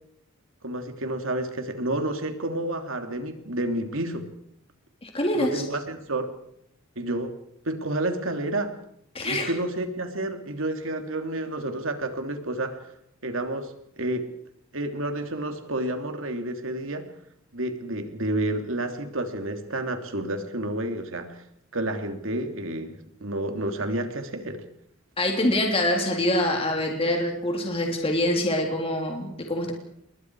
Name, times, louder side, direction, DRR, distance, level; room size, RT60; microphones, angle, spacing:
voice 1, 0.6-4.3 5.3-6.3 7.0-7.3 7.6-8.7 9.2-12.8 13.2-14.3 14.7-17.1 17.5-21.4 21.7-24.6, right 1 dB, 70° right, 6 dB, 3.1 m, -30 dB
voice 2, 5.0-5.6 9.1-9.5 25.2-29.7, left 1 dB, 30° left, 2 dB, 3.6 m, -25 dB
29.0 x 22.5 x 4.9 m, 0.72 s
head